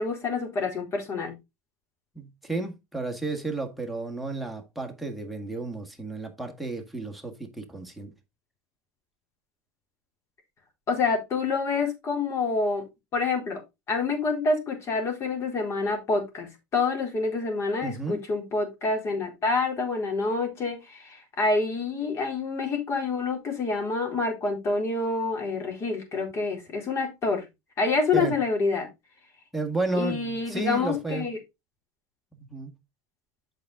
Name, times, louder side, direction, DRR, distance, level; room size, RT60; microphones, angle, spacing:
voice 1, 0.0-1.3 10.9-12.8 13.1-13.6 13.9-27.4 27.8-28.9 29.9-31.4, left 3 dB, 40° left, 4.1 m, -27 dB
voice 2, 2.2-8.1 17.8-18.2 28.1-28.3 29.5-31.3 32.3-32.7, right 3 dB, ahead, 1.8 m, -32 dB
8.6 x 6.1 x 3.7 m
supercardioid pair, 120°, 8 cm